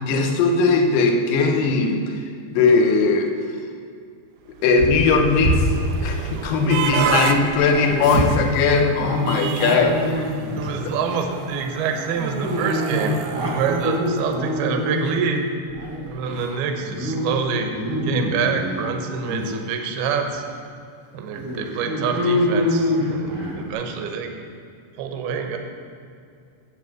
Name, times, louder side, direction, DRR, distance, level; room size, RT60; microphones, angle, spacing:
voice 1, 0.0-2.2 2.5-3.3 4.6-5.7 6.0-10.3, left 4 dB, 75° left, 4 dB, 2.1 m, -19 dB
sound 1, 4.6-14.9, right 9 dB, 90° right, 2.2 m, -32 dB
Dog, 4.8-7.1 7.3-10.7 11.1-11.4 12.1-15.3 15.7-16.4 16.8-17.2 17.6-18.8 19.2-19.5 20.1-20.2 20.6-20.7 21.3-23.6, equal, 50° right, 1.2 m, -25 dB
voice 2, 6.9-7.2 10.5-15.5 16.1-17.7 18.0-20.4 21.1-24.3 25.0-25.6, right 6 dB, 75° right, 4 dB, 2.6 m, -26 dB
9.6 x 7.6 x 7.7 m, 2.3 s
omnidirectional pair, 5.1 m